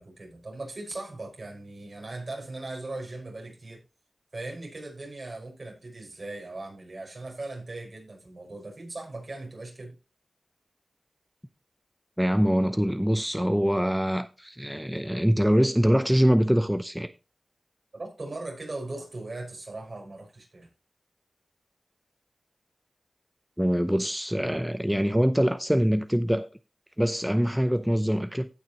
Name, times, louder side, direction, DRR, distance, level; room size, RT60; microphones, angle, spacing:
voice 1, 0.0-3.8 4.3-9.9 17.9-20.7, right 2 dB, 55° right, 5.2 m, -39 dB
voice 2, 12.2-17.1 23.6-26.5 27.0-28.5, equal, 5° right, 0.6 m, -24 dB
16.5 x 5.9 x 3.0 m
wide cardioid pair, 70°, 0 cm